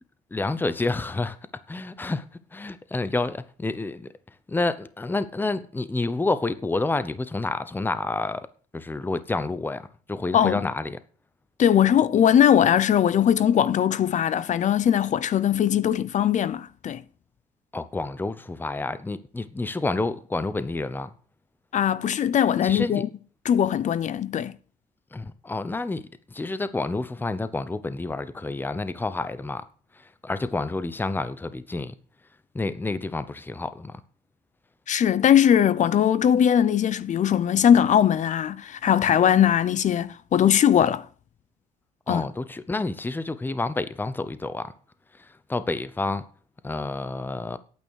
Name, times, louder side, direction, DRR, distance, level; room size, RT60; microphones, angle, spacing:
voice 1, 0.3-1.4 1.7-2.3 2.5-4.1 4.5-8.5 8.7-11.0 17.7-21.1 22.6-23.0 25.1-26.0 26.3-29.6 30.2-31.9 32.5-33.9 42.1-44.7 45.5-46.3 46.6-47.6, left 3 dB, 10° left, 0.8 m, -29 dB
voice 2, 11.6-17.0 21.7-23.1 23.4-24.5 34.9-41.1 42.1-42.2, left 9 dB, 45° left, 0.7 m, -20 dB
9.1 x 8.9 x 6.5 m
cardioid pair, 110°, 17 cm